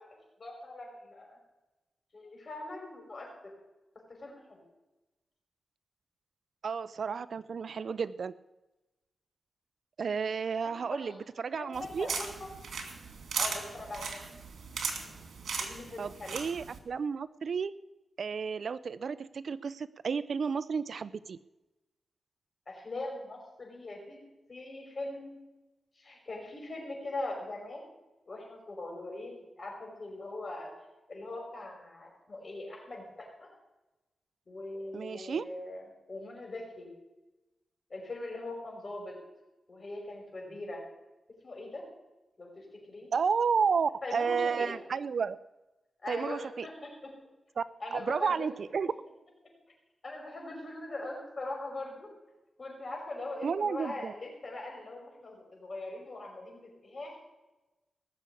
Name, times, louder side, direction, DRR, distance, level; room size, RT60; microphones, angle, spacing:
voice 1, 0.0-1.4 2.1-3.5 4.2-4.6 10.6-11.1 11.6-12.5 13.4-14.2 15.6-16.3 22.7-24.2 24.5-25.4 25.9-27.8 28.3-30.7 31.1-33.6 34.5-36.9 37.9-39.2 39.7-40.8 41.4-41.8 42.4-43.1 44.0-44.8 46.0-47.1 47.8-48.5 48.8-48.9 50.0-52.1 52.6-57.2, left 2 dB, 40° left, 0 dB, 5.6 m, -41 dB
voice 2, 6.6-8.3 10.0-12.1 16.0-17.7 18.2-21.4 34.9-35.4 43.1-45.4 46.1-46.7 47.6-47.7 47.9-48.9 53.4-54.1, right 6 dB, 65° right, 17 dB, 0.4 m, -32 dB
sound 1, 11.7-16.8, right 5 dB, 85° right, 2.5 m, -38 dB
18.5 x 7.1 x 8.3 m, 1.1 s
wide cardioid pair, 110°, 0 cm